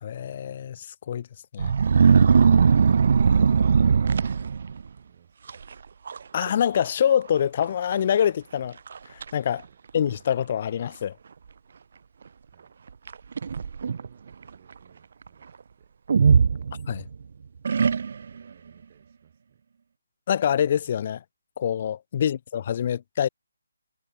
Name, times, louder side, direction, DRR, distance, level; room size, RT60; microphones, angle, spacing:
voice 1, 0.0-1.3 1.5-1.7 6.3-8.8 9.1-9.6 9.9-11.1 16.9-17.0 20.3-21.2 21.6-23.3, left 9 dB, 40° left, 0.3 m, -25 dB
sound 1, 1.6-4.9 5.5-5.7 6.1-6.5 6.7-6.8 7.6-7.7 8.2-8.3 8.9-9.3 10.1-10.2 13.1-14.1 16.1-17.1 17.6-18.4, right 6 dB, 50° right, 0.3 m, -20 dB
voice 2, 3.3-5.7 9.6-9.8 12.4-12.8 13.8-16.0 18.2-19.6 22.1-22.4, right 10 dB, 35° right, 5.9 m, -59 dB
figure-of-eight pair, 150°, 0 cm